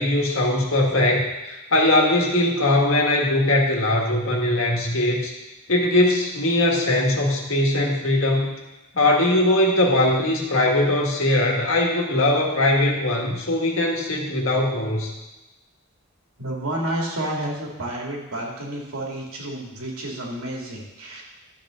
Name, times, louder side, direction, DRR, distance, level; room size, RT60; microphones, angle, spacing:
voice 1, 0.0-5.3 5.7-8.5 8.9-15.1, left 1 dB, 65° left, 0 dB, 1.8 m, -20 dB
voice 2, 16.4-21.2, right 1 dB, 85° right, -2 dB, 2.5 m, -30 dB
12.0 x 7.8 x 3.8 m, 1.0 s
head